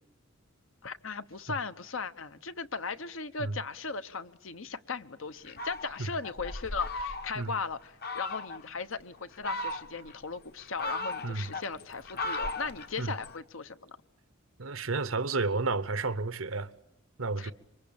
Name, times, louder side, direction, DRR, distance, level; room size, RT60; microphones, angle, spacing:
voice 1, 0.8-14.0 17.4-17.5, left 4 dB, 80° left, 1.1 m, -37 dB
Fowl, 5.5-7.5 8.0-8.6 9.2-10.1 10.6-13.4, left 2 dB, 50° left, 1.0 m, -37 dB
voice 2, 14.6-16.7 17.2-17.5, right 3 dB, 85° right, 1.0 m, -31 dB
27.0 x 24.0 x 8.8 m
head